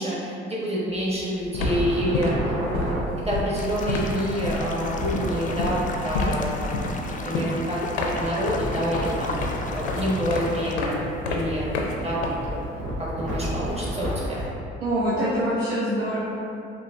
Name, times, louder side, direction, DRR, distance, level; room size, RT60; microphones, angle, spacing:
voice 1, 0.0-3.0 3.2-11.0 11.3-12.6 13.0-14.4, equal, 20° right, -6 dB, 1.2 m, -28 dB
sound 1, 0.9-1.2 1.4-12.8, left 3 dB, 85° left, 0.5 m, -30 dB
sound 2, 1.5-3.0 4.8-5.4 8.1-14.5, right 1 dB, 65° right, 1.2 m, -32 dB
sound 3, 3.6-10.8, left 3 dB, 25° left, 0.4 m, -36 dB
voice 2, 14.8-16.2, equal, 90° right, -9 dB, 0.6 m, -24 dB
5.6 x 2.4 x 2.5 m, 2.7 s
hypercardioid pair, 50°, 31 cm